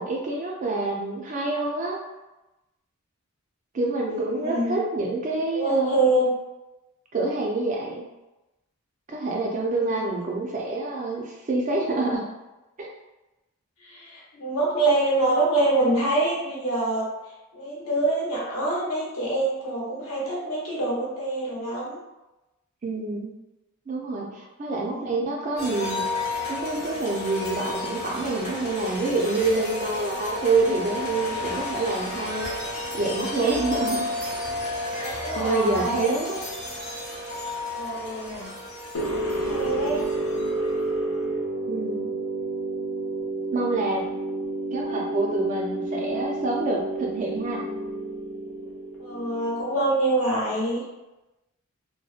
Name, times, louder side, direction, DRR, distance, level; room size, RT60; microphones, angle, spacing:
voice 1, 0.0-2.0 3.7-6.0 7.1-8.0 9.1-12.3 12.8-12.9 22.8-23.4 23.9-26.2 26.5-32.6 32.9-34.1 35.0-36.4 41.7-42.1 43.5-44.1 44.7-47.7, right 2 dB, 35° right, -1 dB, 0.3 m, -27 dB
voice 2, 4.3-4.7 5.5-6.3 9.8-10.0 13.8-17.1 17.5-22.0 24.9-25.1 35.0-36.2 37.7-38.6 39.2-40.0 49.0-50.8, right 2 dB, 65° left, -5 dB, 0.9 m, -25 dB
sound 1, 25.6-40.7, left 2 dB, 30° left, 0.7 m, -32 dB
sound 2, 38.9-49.8, right 2 dB, 80° left, 0.5 m, -30 dB
2.7 x 2.1 x 2.4 m, 1.0 s
head